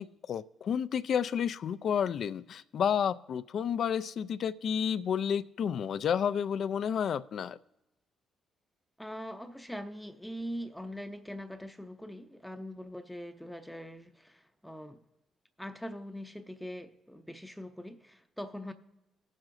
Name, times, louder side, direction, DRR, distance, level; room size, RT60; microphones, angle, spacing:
voice 1, 0.0-7.6, left 8 dB, 60° left, 14 dB, 0.3 m, -31 dB
voice 2, 9.0-15.0 15.6-18.7, equal, 5° left, 7 dB, 0.6 m, -42 dB
18.0 x 7.4 x 2.5 m, 0.96 s
cardioid pair, 90°, 0 cm